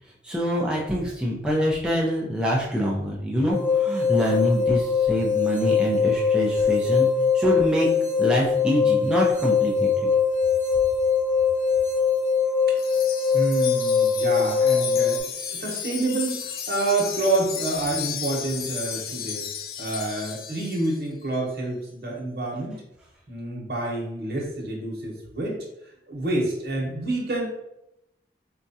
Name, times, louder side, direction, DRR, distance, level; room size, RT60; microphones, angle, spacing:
voice 1, 0.2-7.1 7.3-7.9 8.2-10.1, equal, 5° right, -4 dB, 0.6 m, -25 dB
sound 1, 3.5-15.2, left 5 dB, 10° left, 1.2 m, -22 dB
Wind chime, 12.8-21.0, left 8 dB, 55° left, 0.4 m, -34 dB
voice 2, 13.3-19.5 19.8-22.8 23.3-25.6 26.1-27.5, right 2 dB, 60° right, -2 dB, 1.1 m, -28 dB
4.3 x 2.4 x 2.7 m, 0.84 s
head